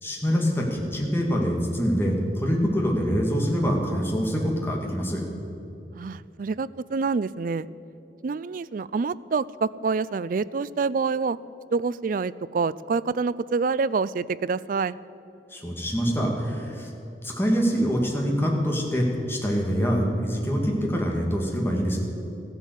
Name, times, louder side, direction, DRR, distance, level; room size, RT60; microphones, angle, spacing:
voice 1, 0.0-5.2 15.5-16.9 17.2-22.0, equal, 15° left, -1 dB, 2.3 m, -25 dB
voice 2, 5.9-7.7 8.2-11.4 11.7-14.9, right 4 dB, 50° right, 18 dB, 0.4 m, -27 dB
15.0 x 10.5 x 8.2 m, 2.8 s
head